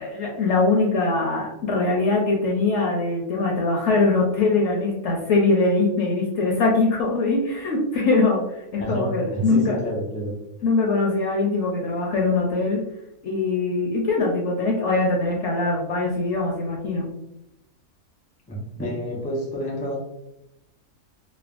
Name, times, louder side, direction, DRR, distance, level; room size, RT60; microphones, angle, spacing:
voice 1, 0.0-8.4 8.7-9.8 10.6-12.8 13.2-17.1, left 3 dB, 65° left, -1 dB, 0.8 m, -22 dB
voice 2, 8.8-10.3 18.5-20.0, equal, 10° left, -4 dB, 0.5 m, -29 dB
3.3 x 2.0 x 2.4 m, 0.86 s
omnidirectional pair, 1.5 m